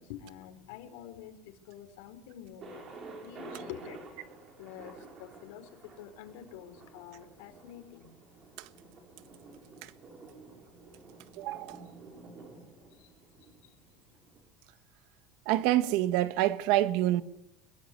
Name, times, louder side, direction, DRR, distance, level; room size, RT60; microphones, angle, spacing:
voice 1, 0.0-2.8 3.2-4.3 4.6-8.1 10.8-11.0 11.8-12.2 12.9-13.1 13.4-13.7, left 10 dB, 85° left, 4.5 m, -48 dB
Thunder, 2.6-14.4, right 3 dB, 30° right, 6.2 m, -50 dB
voice 2, 11.4-11.8 15.4-17.2, right 14 dB, 60° right, 1.5 m, -27 dB
24.5 x 22.0 x 9.8 m
cardioid pair, 180°, 0 cm